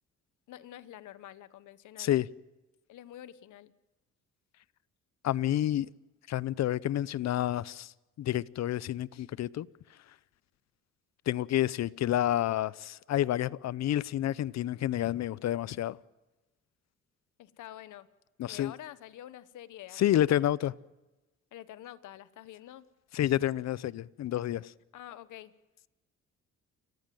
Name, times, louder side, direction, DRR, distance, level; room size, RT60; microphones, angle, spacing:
voice 1, 0.5-2.1 2.9-3.7 17.4-18.1 18.5-20.5 21.5-22.9 24.9-25.5, left 12 dB, 80° left, 1.2 m, -47 dB
voice 2, 5.2-5.9 6.3-7.9 8.2-9.7 11.3-16.0 18.4-18.7 20.0-20.7 23.1-24.7, left 12 dB, 60° left, 0.7 m, -29 dB
29.5 x 14.5 x 7.8 m
cardioid pair, 90°, 30 cm